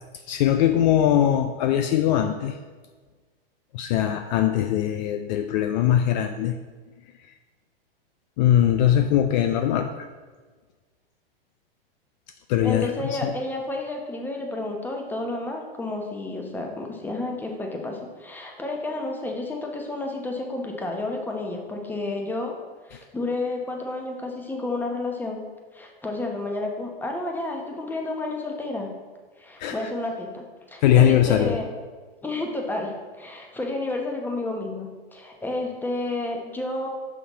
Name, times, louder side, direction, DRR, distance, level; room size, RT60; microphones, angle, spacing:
voice 1, 0.1-2.6 3.7-6.6 8.4-10.1 12.5-13.3 22.9-23.0 29.6-29.8 30.8-31.6, left 10 dB, 50° left, 7 dB, 0.4 m, -21 dB
voice 2, 12.6-22.5 22.9-25.4 25.7-28.9 29.4-31.7 32.2-36.9, left 2 dB, 5° left, 1 dB, 0.9 m, -31 dB
5.8 x 5.7 x 4.1 m, 1.4 s
hypercardioid pair, 115°, 30 cm